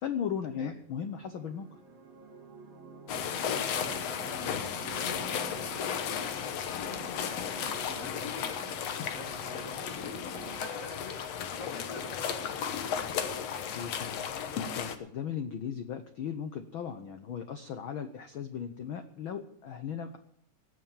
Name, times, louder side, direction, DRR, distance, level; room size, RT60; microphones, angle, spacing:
voice 1, 0.0-1.7 13.7-20.2, left 8 dB, 85° left, 8 dB, 1.1 m, -37 dB
sound 1, 1.0-10.6, right 5 dB, 60° right, 3.6 m, -49 dB
sound 2, 3.1-15.0, left 8 dB, 65° left, 2.0 m, -34 dB
voice 2, 3.4-4.0 4.5-6.4 6.8-10.1 10.4-13.3, left 2 dB, 25° left, 2 dB, 2.6 m, -47 dB
18.5 x 6.6 x 8.9 m, 0.72 s
omnidirectional pair, 3.5 m